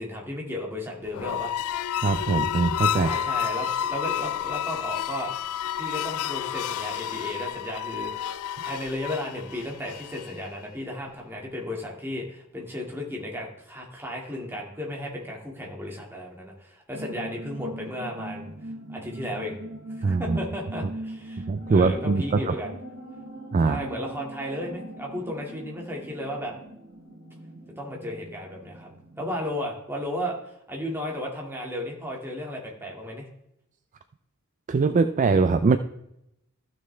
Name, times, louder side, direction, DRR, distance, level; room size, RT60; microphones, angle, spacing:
voice 1, 0.0-1.5 2.9-5.3 5.8-8.3 8.6-18.5 18.9-19.6 20.0-22.7 23.6-26.5 27.8-28.9 29.2-30.4 30.7-33.3, left 1 dB, 10° right, -1 dB, 2.0 m, -34 dB
sound 1, 1.1-10.5, left 10 dB, 75° left, 0.3 m, -30 dB
voice 2, 2.0-3.1 20.0-20.4 21.5-22.5 23.5-23.8 34.7-35.8, right 4 dB, 35° right, 10 dB, 0.3 m, -22 dB
sound 2, 16.9-29.4, right 1 dB, 60° right, 2.0 m, -41 dB
14.5 x 6.4 x 3.3 m, 0.82 s
head